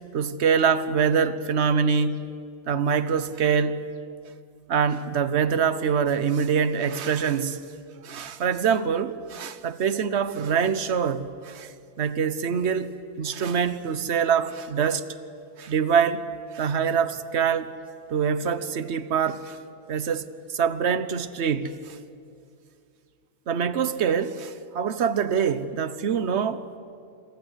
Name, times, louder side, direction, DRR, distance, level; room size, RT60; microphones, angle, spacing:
voice 1, 0.1-2.3 2.7-3.9 4.7-7.6 8.0-11.7 12.0-12.9 13.2-15.1 15.6-16.2 16.5-17.7 18.1-19.6 19.9-22.0 23.5-26.7, right 7 dB, 60° right, 1.2 m, -24 dB
27.0 x 24.0 x 8.2 m
omnidirectional pair, 1.3 m